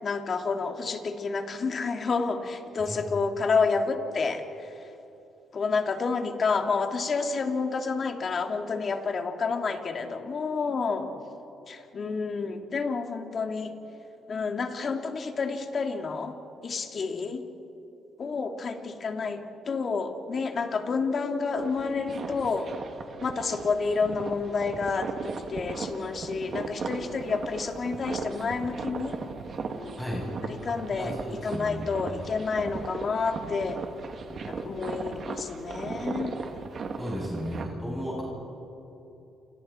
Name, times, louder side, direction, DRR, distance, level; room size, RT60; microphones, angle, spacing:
voice 1, 0.0-4.4 5.5-11.1 11.7-13.7 14.3-16.4 16.6-17.4 18.2-19.4 19.7-22.7 23.2-29.2 30.6-31.1 31.4-33.8 34.5-36.4, left 4 dB, 50° left, 5 dB, 2.5 m, -29 dB
sound 1, 21.5-37.7, right 4 dB, 55° right, 2.6 m, -37 dB
voice 2, 30.9-32.2 37.0-38.2, equal, 5° left, -5 dB, 7.8 m, -34 dB
29.5 x 28.0 x 4.4 m, 2.9 s
supercardioid pair, 70°, 0 cm